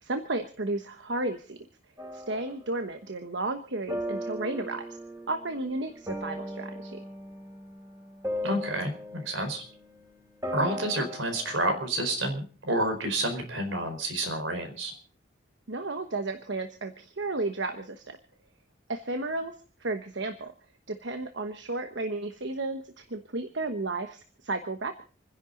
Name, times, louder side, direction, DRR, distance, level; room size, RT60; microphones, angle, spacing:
voice 1, 0.0-1.6 2.1-5.0 5.3-7.0 15.7-18.2 18.9-19.5 19.8-20.5 20.9-25.0, right 2 dB, 70° right, 7 dB, 1.2 m, -33 dB
sound 1, 2.0-2.7 3.9-10.0 10.4-11.7, equal, 15° right, 3.9 m, -38 dB
voice 2, 8.4-9.6 10.5-14.9, right 1 dB, 90° right, 6 dB, 4.5 m, -29 dB
28.0 x 11.0 x 3.9 m, 0.39 s
head